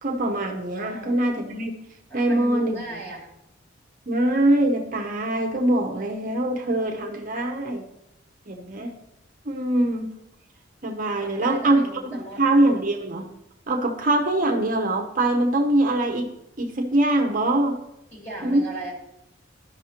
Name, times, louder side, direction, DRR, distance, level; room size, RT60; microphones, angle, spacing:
voice 1, 0.0-1.7 2.1-2.8 4.1-7.9 8.5-8.9 9.4-10.1 10.8-13.3 13.7-16.3 16.6-17.8 18.4-18.7, right 1 dB, 45° right, 2 dB, 0.7 m, -23 dB
voice 2, 0.8-1.1 2.1-3.3 11.2-12.4 18.1-18.9, right 1 dB, 10° left, -3 dB, 2.3 m, -37 dB
12.5 x 5.6 x 2.9 m, 0.86 s
head